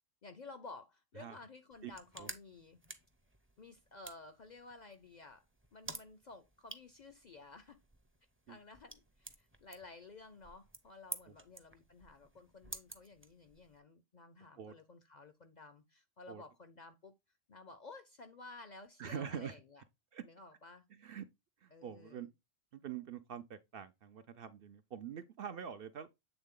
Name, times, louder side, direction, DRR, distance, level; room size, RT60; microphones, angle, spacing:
voice 1, 0.2-2.8 3.6-5.5 5.7-7.8 8.5-17.1 17.5-19.8 20.2-20.8 21.7-22.3, left 3 dB, 50° left, 0.5 m, -54 dB
sound 1, 1.7-13.8, right 2 dB, 15° right, 0.5 m, -52 dB
voice 2, 19.0-19.6 20.1-20.2 21.0-21.3 21.6-22.3 22.7-26.1, right 8 dB, 60° right, 0.6 m, -45 dB
8.0 x 3.7 x 3.6 m
omnidirectional pair, 1.3 m